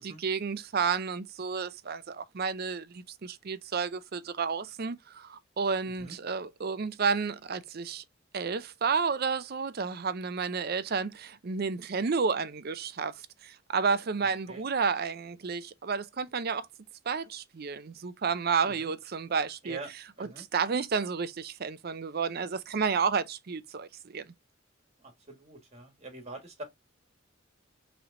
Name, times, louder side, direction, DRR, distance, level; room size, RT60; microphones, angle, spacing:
voice 1, 0.0-8.0 8.3-13.1 13.4-16.7 17.1-19.8 20.4-24.3, right 5 dB, 50° right, 0.5 m, -31 dB
voice 2, 5.8-6.2 14.5-14.6 18.6-18.9 19.6-19.9 20.2-20.4 25.0-26.6, right 2 dB, 30° right, 1.6 m, -44 dB
5.7 x 3.2 x 2.5 m
head